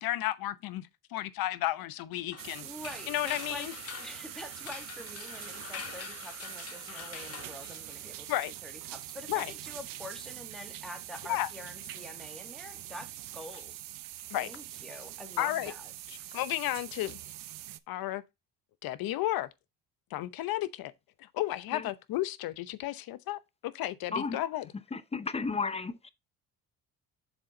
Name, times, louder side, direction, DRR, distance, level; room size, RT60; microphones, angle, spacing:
voice 1, 0.0-2.7 3.1-3.7 8.3-8.5 9.3-9.5 11.3-11.5 14.3-14.5 15.4-15.7 16.3-17.2 17.9-18.2 18.8-19.5 20.1-20.9 21.2-24.7, left 15 dB, 70° left, 0.9 m, -33 dB
sound 1, 2.3-8.3, left 7 dB, 40° left, 1.1 m, -45 dB
sound 2, 2.4-17.8, right 14 dB, 65° right, 0.7 m, -44 dB
voice 2, 2.6-13.1 13.3-13.8 14.3-15.9, equal, ahead, 2.0 m, -46 dB
voice 3, 24.9-26.1, left 4 dB, 15° left, 0.6 m, -33 dB
7.1 x 4.4 x 3.9 m
cardioid pair, 95°, 37 cm